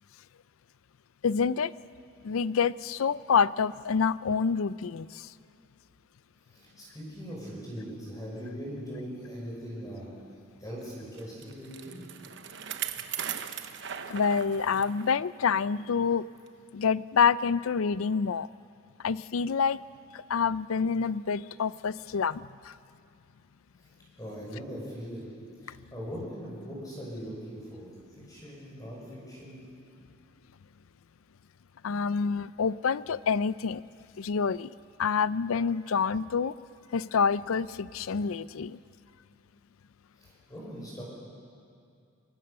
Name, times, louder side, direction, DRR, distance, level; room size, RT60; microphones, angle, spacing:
voice 1, 1.2-1.7 2.2-5.3 14.1-16.3 16.7-18.5 19.0-19.8 20.1-22.7 25.7-25.8 31.8-33.8 34.2-34.7 35.0-36.6 36.9-38.8, left 6 dB, 85° left, 18 dB, 0.5 m, -27 dB
voice 2, 6.5-10.1 10.6-12.1 23.8-23.9 24.2-25.3 25.6-27.9 28.2-29.6 40.2-41.0, equal, 15° left, -5 dB, 6.0 m, -40 dB
Bicycle, 11.2-15.1 15.5-15.6 16.5-16.6, right 9 dB, 60° right, 1.0 m, -38 dB
25.0 x 22.5 x 6.8 m, 2.4 s
head